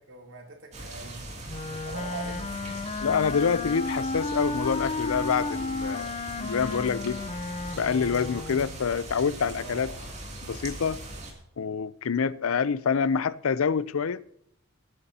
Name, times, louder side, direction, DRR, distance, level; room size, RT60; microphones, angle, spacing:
voice 1, 0.0-1.4 1.8-2.8 9.6-10.1, right 3 dB, 65° right, 3.0 m, -42 dB
sound 1, 0.7-11.3, right 2 dB, 35° right, 2.7 m, -40 dB
Wind instrument woodwind instrument, 1.5-8.8, left 3 dB, 30° left, 0.6 m, -33 dB
voice 2, 3.0-6.1 6.3-7.2 7.7-9.9 10.5-11.0 11.6-14.2, left 6 dB, 85° left, 0.5 m, -26 dB
18.5 x 9.6 x 2.8 m
head